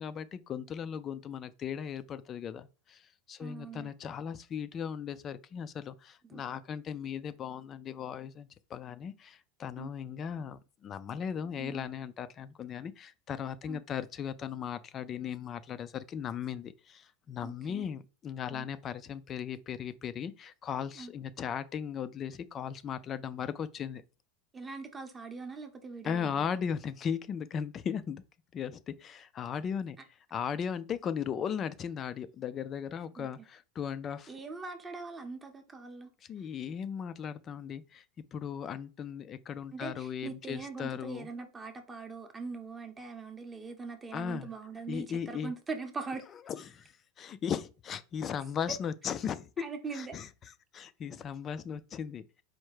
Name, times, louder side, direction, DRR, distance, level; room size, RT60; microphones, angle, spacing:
voice 1, 0.0-24.0 26.0-28.2 28.5-30.0 30.3-34.3 36.3-38.0 38.3-41.3 44.1-44.5 44.9-45.5 46.5-49.6 49.9-50.3 50.7-52.2, left 7 dB, 25° left, 0.3 m, -37 dB
voice 2, 3.4-3.9 6.2-6.4 9.8-9.9 11.6-11.9 13.7-13.8 17.4-17.9 18.5-18.7 20.9-21.1 24.5-26.5 33.2-33.3 34.3-36.1 39.7-46.2 49.6-50.2, right 4 dB, 15° right, 0.7 m, -42 dB
4.4 x 2.1 x 4.7 m
supercardioid pair, 150°, 0 cm